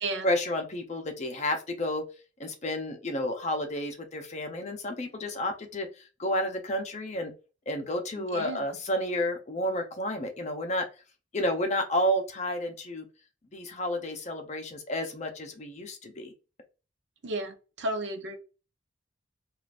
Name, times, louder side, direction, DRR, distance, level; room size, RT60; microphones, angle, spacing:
voice 1, 0.2-2.0 2.4-7.3 7.7-10.9 11.3-13.1 13.5-16.3, left 1 dB, 35° left, 5 dB, 0.6 m, -31 dB
voice 2, 8.2-8.6 17.2-18.4, right 2 dB, 60° right, 6 dB, 0.7 m, -33 dB
3.7 x 2.4 x 2.4 m, 0.31 s
head